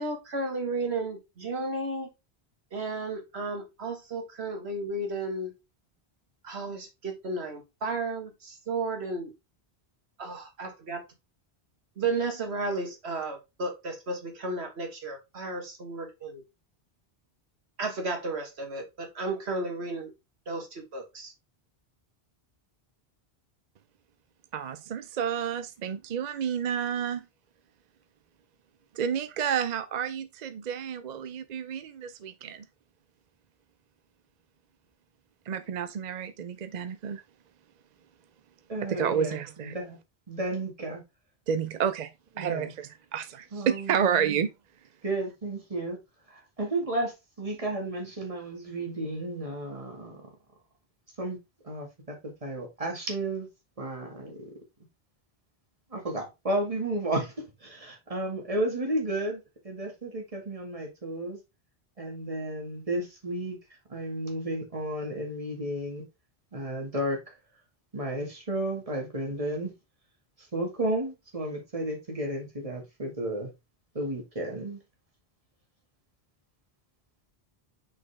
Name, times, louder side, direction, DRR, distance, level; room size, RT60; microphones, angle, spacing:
voice 1, 0.0-2.1 2.7-5.5 6.4-9.3 10.2-11.0 12.0-16.4 17.8-20.1 20.5-21.3, right 3 dB, 80° right, 1.8 m, -33 dB
voice 2, 24.5-27.2 28.9-32.6 35.5-37.2 38.9-39.7 41.5-42.1 42.4-44.5, right 8 dB, 55° right, 0.5 m, -30 dB
voice 3, 38.7-40.0 40.3-41.0 42.4-42.7 43.5-44.4 45.0-46.0 46.3-50.3 51.2-51.4 51.6-53.5 53.8-54.5 55.9-61.4 62.0-63.6 63.9-66.0 66.5-67.2 67.9-69.7 70.4-73.5 73.9-74.8, right 1 dB, 35° right, 2.0 m, -33 dB
6.1 x 5.3 x 3.4 m
omnidirectional pair, 1.1 m